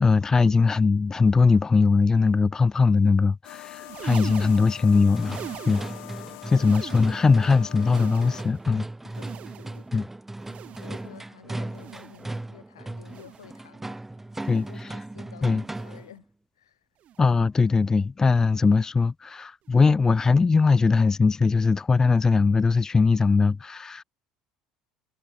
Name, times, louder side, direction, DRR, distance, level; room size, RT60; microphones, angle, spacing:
voice 1, 0.0-5.4 5.7-5.9 6.5-8.9 9.9-10.0 14.5-14.9 15.4-15.6 17.2-24.0, left 4 dB, 20° left, 0.4 m, -20 dB
sound 1, 3.4-8.4, left 34 dB, 70° left, 2.4 m, -43 dB
sound 2, 3.7-6.1 6.4-7.4 7.7-8.7 9.1-9.9 10.4-11.1 11.7-12.4 13.0-13.6 14.3-14.9 15.7-16.1 17.0-17.3 18.3-18.5 19.7-19.8, right 11 dB, 50° right, 1.2 m, -42 dB
sound 3, 4.9-16.2, right 2 dB, 10° right, 1.5 m, -37 dB
voice 2, 10.8-14.0 14.5-16.3 16.6-16.8, left 10 dB, 90° left, 4.1 m, -50 dB
hypercardioid pair, 70°, 3 cm